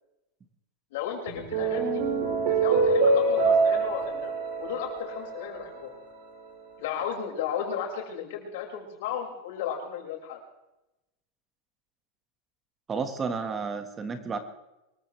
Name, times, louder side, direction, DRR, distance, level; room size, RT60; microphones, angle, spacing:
voice 1, 0.9-2.0 2.5-5.9 6.8-10.4, left 8 dB, 70° left, 0 dB, 5.9 m, -34 dB
sound 1, 1.3-5.8, right 3 dB, 70° right, 6.2 m, -25 dB
voice 2, 12.9-14.4, right 5 dB, 20° right, 8 dB, 1.7 m, -31 dB
24.5 x 14.5 x 3.4 m, 0.94 s
supercardioid pair, 130°, 0 cm